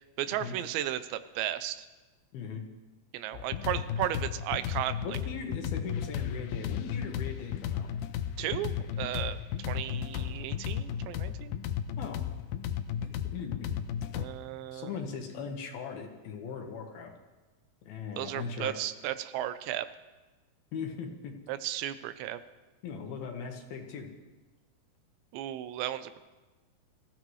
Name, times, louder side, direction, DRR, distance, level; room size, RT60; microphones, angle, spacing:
voice 1, 0.0-1.9 3.1-5.2 8.4-9.4 9.7-11.5 14.1-15.0 18.2-19.9 21.5-22.4 25.3-26.2, right 12 dB, 85° right, 12 dB, 2.9 m, -35 dB
voice 2, 2.3-2.6 5.0-7.9 12.0-12.2 13.3-13.8 14.7-17.1 17.9-18.7 20.7-21.3 22.8-24.1, left 5 dB, 65° left, 3 dB, 2.9 m, -39 dB
sound 1, 3.3-14.3, left 9 dB, 85° left, 2.2 m, -34 dB
25.0 x 15.0 x 3.2 m, 1.2 s
omnidirectional pair, 5.0 m